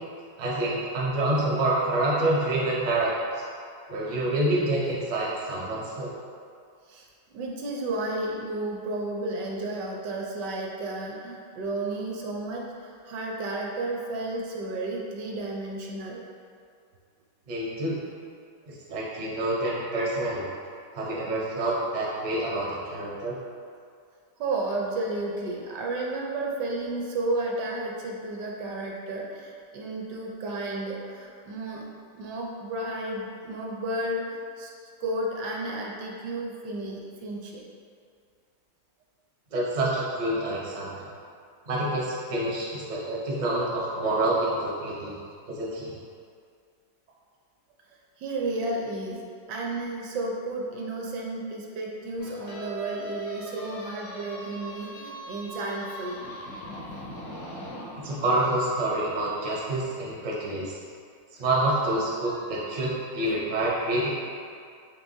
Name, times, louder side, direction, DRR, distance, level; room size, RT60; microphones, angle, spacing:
voice 1, 0.4-3.4 3.9-6.1 17.5-18.0 18.7-20.4 20.9-23.4 39.5-41.0 41.7-45.1 45.5-45.9 58.0-60.8 61.4-64.1, right 1 dB, 55° right, -6 dB, 0.5 m, -27 dB
voice 2, 6.9-16.2 24.4-31.9 32.1-34.7 35.0-37.6 48.2-56.3, right 2 dB, 75° right, -1 dB, 1.1 m, -32 dB
sound 1, 52.2-58.4, equal, 80° left, 0.6 m, -40 dB
4.6 x 3.2 x 2.6 m, 2.3 s
omnidirectional pair, 2.0 m